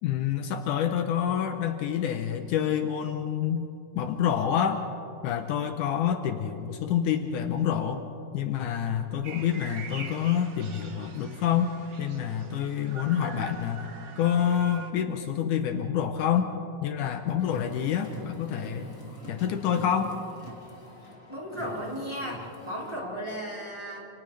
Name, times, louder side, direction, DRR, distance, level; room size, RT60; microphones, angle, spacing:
voice 1, 0.0-3.7 4.0-4.8 5.2-8.1 8.3-13.9 14.2-16.5 16.8-18.9 19.3-20.2, left 9 dB, 75° left, 6 dB, 2.3 m, -27 dB
sound 1, 9.2-14.9, right 4 dB, 50° right, 1.2 m, -44 dB
Car, 17.4-23.0, left 2 dB, 25° left, 2.9 m, -45 dB
voice 2, 21.3-24.0, equal, 10° right, -5 dB, 3.8 m, -35 dB
29.5 x 29.0 x 3.4 m, 2.9 s
omnidirectional pair, 3.8 m